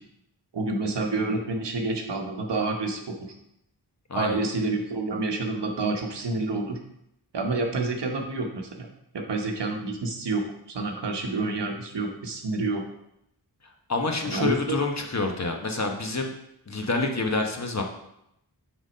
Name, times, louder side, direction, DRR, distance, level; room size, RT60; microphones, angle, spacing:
voice 1, 0.5-3.2 4.1-6.8 7.3-8.9 9.1-12.8 14.2-14.8, right 3 dB, 85° right, 3 dB, 1.1 m, -28 dB
voice 2, 13.9-16.3 16.7-17.8, left 3 dB, 40° left, 3 dB, 1.0 m, -27 dB
6.0 x 3.9 x 5.2 m, 0.79 s
wide cardioid pair, 55°, 41 cm